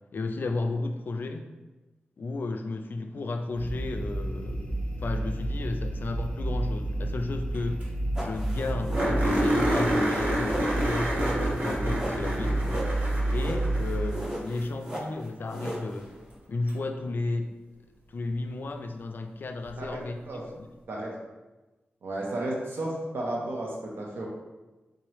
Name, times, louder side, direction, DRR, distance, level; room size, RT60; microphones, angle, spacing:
voice 1, 0.1-1.5 2.2-7.9 8.2-11.2 11.4-12.7 13.3-16.1 16.5-17.6 18.1-20.7, left 3 dB, 60° left, 6 dB, 0.3 m, -33 dB
sound 1, 3.6-14.1, right 1 dB, 30° left, 0.7 m, -30 dB
sound 2, 7.5-7.6 7.8-7.9 8.2-8.3 8.9-14.3 16.7-16.8 19.6-19.7, right 1 dB, 50° right, 1.0 m, -28 dB
sound 3, 8.2-16.4, right 1 dB, 15° right, 0.7 m, -37 dB
voice 2, 19.8-20.4 20.9-21.2 22.0-24.3, right 1 dB, 75° right, -2 dB, 0.7 m, -33 dB
3.7 x 3.0 x 3.1 m, 1.1 s
wide cardioid pair, 105°, 4 cm